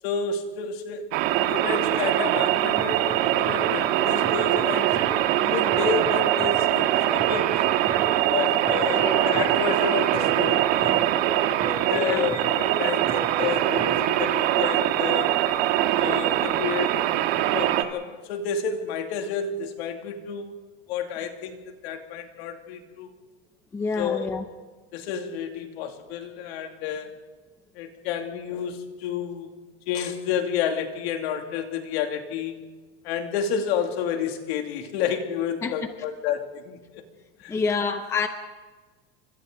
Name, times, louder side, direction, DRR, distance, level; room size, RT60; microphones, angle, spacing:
voice 1, 0.0-1.1 1.5-5.0 5.4-7.6 8.3-11.1 11.7-15.4 15.9-16.9 17.5-20.5 20.9-23.1 24.0-24.3 24.9-27.1 27.7-29.6 29.9-32.6 33.0-37.0 37.4-37.5, left 7 dB, 60° left, 4 dB, 2.8 m, -30 dB
sound 1, 1.1-17.8, right 13 dB, 55° right, 1.7 m, -23 dB
sound 2, 2.3-14.1, right 3 dB, 10° right, 2.1 m, -36 dB
voice 2, 8.9-9.2 11.9-12.4 23.7-24.4 35.6-35.7 37.5-38.3, left 4 dB, 10° left, 7 dB, 0.7 m, -28 dB
29.5 x 25.5 x 3.9 m, 1.3 s
supercardioid pair, 180°, 35 cm